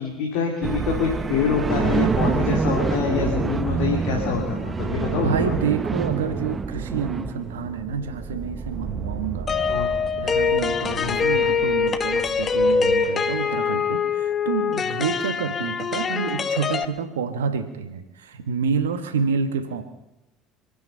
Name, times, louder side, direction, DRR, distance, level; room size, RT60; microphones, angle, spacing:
voice 1, 0.0-5.5 9.7-9.9 11.0-11.2, left 6 dB, 70° left, -1 dB, 3.1 m, -26 dB
sound 1, 0.6-13.1, right 5 dB, 30° right, 0.9 m, -27 dB
voice 2, 5.1-9.5 10.1-19.8, right 6 dB, 90° right, 9 dB, 1.5 m, -28 dB
sound 2, 9.5-16.8, left 5 dB, 35° left, 1.1 m, -23 dB
26.0 x 9.6 x 5.6 m, 0.95 s
hypercardioid pair, 70°, 0 cm